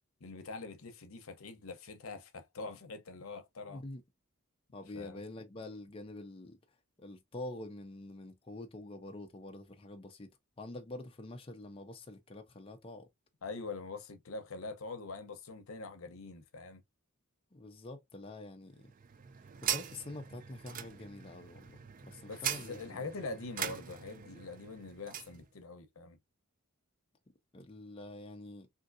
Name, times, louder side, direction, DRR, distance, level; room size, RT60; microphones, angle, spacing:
voice 1, 0.2-3.8 4.9-5.2 13.4-16.8 22.3-26.2, left 3 dB, 75° left, 0.8 m, -44 dB
voice 2, 3.7-4.0 4.7-6.6 7.0-10.3 10.6-13.1 17.5-18.9 19.6-23.1 27.5-28.7, left 2 dB, 25° left, 0.5 m, -46 dB
sound 1, 18.8-25.4, right 9 dB, 40° right, 0.4 m, -41 dB
3.6 x 2.7 x 2.5 m
head